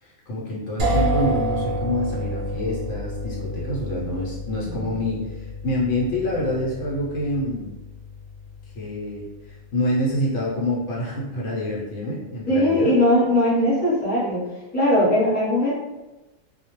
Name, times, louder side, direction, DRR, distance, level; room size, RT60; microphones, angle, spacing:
voice 1, 0.0-7.7 8.7-12.9, left 1 dB, 70° left, -4 dB, 0.9 m, -27 dB
sound 1, 0.8-10.6, right 1 dB, 60° right, 0.7 m, -30 dB
voice 2, 12.5-14.4 14.7-15.8, left 1 dB, 10° left, -8 dB, 0.7 m, -20 dB
2.2 x 2.0 x 2.9 m, 1.1 s
omnidirectional pair, 1.3 m